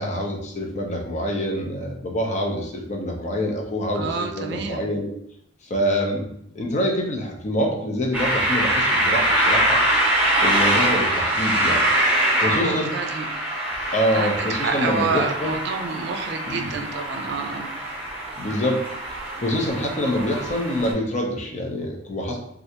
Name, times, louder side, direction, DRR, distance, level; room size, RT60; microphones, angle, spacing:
voice 1, 0.0-5.1 5.6-6.3 6.5-9.8 10.4-11.9 12.4-12.9 13.9-15.6 16.5-16.7 18.4-18.8 19.4-22.4, equal, 40° left, 0 dB, 0.6 m, -26 dB
voice 2, 3.9-4.9 12.5-13.3 14.1-17.7, right 4 dB, 60° right, 5 dB, 0.4 m, -28 dB
sound 1, 8.1-20.9, right 1 dB, 10° right, 0.9 m, -23 dB
3.2 x 2.4 x 2.8 m, 0.73 s
head